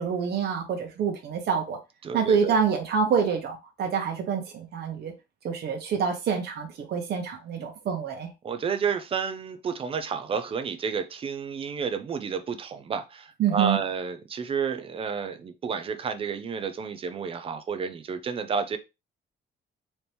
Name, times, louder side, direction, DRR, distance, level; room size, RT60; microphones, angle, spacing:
voice 1, 0.0-1.8 2.1-5.1 5.4-8.3 13.4-13.8, right 6 dB, 60° right, 1.1 m, -27 dB
voice 2, 2.0-2.6 8.4-18.8, right 6 dB, 30° right, 0.5 m, -31 dB
4.3 x 2.9 x 3.4 m
cardioid pair, 180°, 19 cm